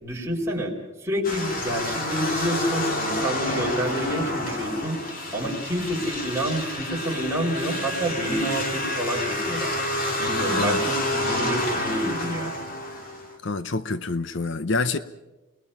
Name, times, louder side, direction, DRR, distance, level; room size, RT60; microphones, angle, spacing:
voice 1, 0.0-0.7 1.0-5.0 5.3-9.7 10.2-12.5, right 1 dB, 15° right, -1 dB, 4.4 m, -28 dB
sound 1, 1.2-13.4, left 1 dB, 45° left, 3.1 m, -29 dB
voice 2, 13.4-15.0, left 3 dB, 60° left, 12 dB, 0.9 m, -27 dB
29.0 x 21.0 x 5.6 m, 1.1 s
head